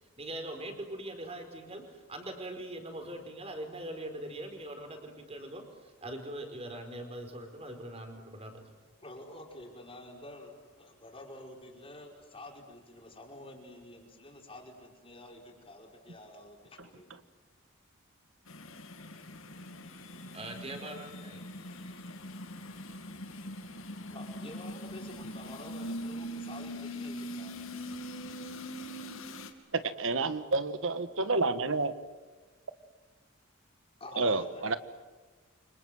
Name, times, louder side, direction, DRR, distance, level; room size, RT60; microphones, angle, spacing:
voice 1, 0.2-1.8 2.1-8.6 20.3-21.4, right 1 dB, 30° right, 5 dB, 4.8 m, -42 dB
voice 2, 9.0-17.2 24.1-27.5 27.9-28.1 34.0-34.5, left 1 dB, 25° left, 0 dB, 5.2 m, -49 dB
sound 1, 18.5-29.5, equal, 75° left, 2.8 m, -42 dB
voice 3, 30.0-31.9 34.2-34.8, right 3 dB, 70° right, 11 dB, 1.5 m, -29 dB
29.5 x 26.0 x 7.9 m, 1.3 s
head